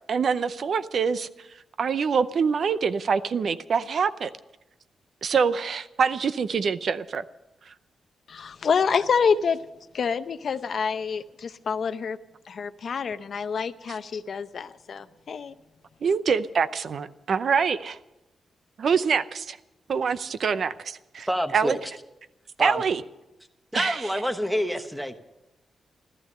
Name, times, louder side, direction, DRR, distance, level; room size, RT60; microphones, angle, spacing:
voice 1, 0.1-1.3 1.8-4.3 5.2-7.2 16.0-18.0 18.8-19.6 19.9-21.3 21.5-21.8 22.6-23.0 23.7-24.1, right 6 dB, 50° right, 13 dB, 0.6 m, -25 dB
voice 2, 8.3-9.6 9.9-12.2 12.5-15.5, left 6 dB, 50° left, 11 dB, 0.7 m, -27 dB
voice 3, 21.3-21.8 22.6-22.8 23.7-25.2, equal, 5° right, 8 dB, 1.1 m, -27 dB
15.0 x 13.5 x 6.6 m, 0.95 s
wide cardioid pair, 165°, 0 cm